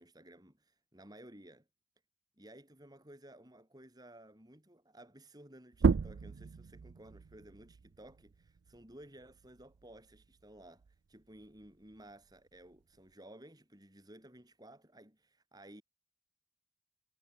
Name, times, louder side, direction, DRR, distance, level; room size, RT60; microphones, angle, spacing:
voice 1, 0.0-1.7 2.4-15.8, right 1 dB, 20° right, 7.4 m, -56 dB
sound 1, 5.7-10.9 11.3-13.1, right 5 dB, 75° right, 0.4 m, -36 dB
head